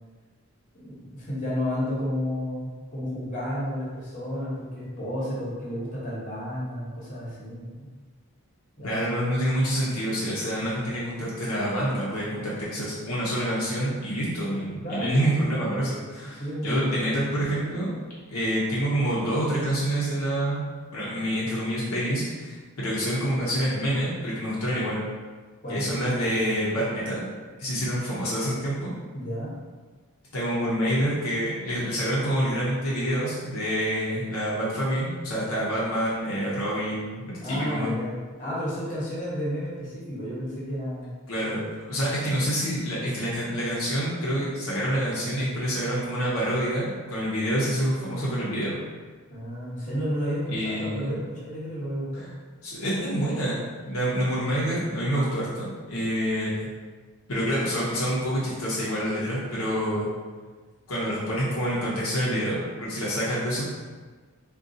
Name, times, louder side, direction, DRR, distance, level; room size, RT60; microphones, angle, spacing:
voice 1, 0.7-7.9 8.8-9.2 14.8-15.3 16.2-17.3 25.6-26.0 29.1-29.5 37.4-41.1 49.3-52.3, equal, 35° left, -7 dB, 1.0 m, -32 dB
voice 2, 8.8-17.9 18.3-20.6 20.9-25.0 25.7-27.2 27.6-28.9 30.3-37.9 41.3-48.8 50.5-51.1 52.1-52.3 52.6-53.6 53.9-56.7 57.3-60.1 60.9-63.6, equal, 65° left, -7 dB, 0.6 m, -27 dB
3.7 x 2.3 x 2.6 m, 1.4 s
head